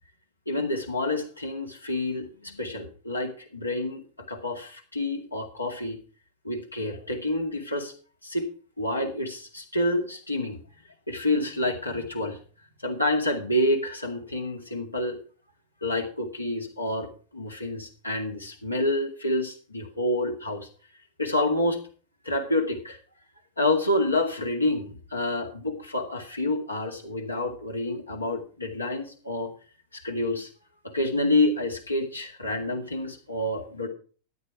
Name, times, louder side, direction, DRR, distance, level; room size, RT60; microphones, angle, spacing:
voice 1, 0.5-6.0 6.4-7.9 8.2-8.5 8.8-10.6 11.1-12.4 12.8-15.2 15.8-20.7 21.2-21.8 22.2-23.0 23.6-29.5 29.9-30.5 30.8-33.9, left 1 dB, 85° left, 3 dB, 2.2 m, -28 dB
13.5 x 10.5 x 4.7 m, 0.40 s
figure-of-eight pair, 90°, 0 cm